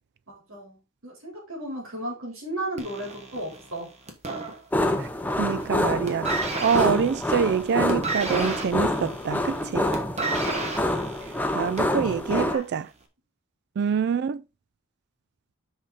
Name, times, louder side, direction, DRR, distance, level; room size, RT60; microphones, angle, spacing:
voice 1, 0.3-3.9 4.4-4.5 9.5-9.9 12.0-12.6, right 1 dB, 80° right, 4.2 m, -35 dB
sound 1, 2.8-5.1 5.4-5.8 6.1-12.0 12.8-12.9, right 3 dB, 35° right, 1.4 m, -33 dB
sound 2, 4.7-12.5, left 1 dB, 10° left, 0.8 m, -27 dB
voice 2, 5.4-9.8 11.5-12.9 13.8-14.4, right 7 dB, 55° right, 0.3 m, -25 dB
6.2 x 5.9 x 4.2 m
head